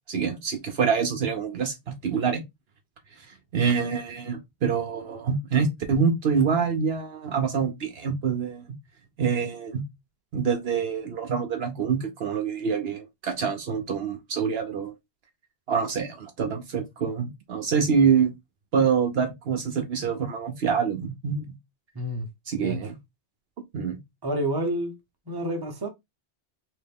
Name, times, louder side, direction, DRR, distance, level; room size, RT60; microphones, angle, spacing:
voice 1, 0.1-2.4 3.2-3.3 3.5-8.6 9.2-9.8 10.3-14.9 15.7-18.3 18.7-21.5 22.5-23.0 23.7-24.0, right 6 dB, 70° right, 0.9 m, -26 dB
voice 2, 21.9-22.3 22.6-22.8 24.2-25.0 25.3-25.9, right 1 dB, 20° right, 1.0 m, -28 dB
3.2 x 2.8 x 3.5 m
omnidirectional pair, 1.1 m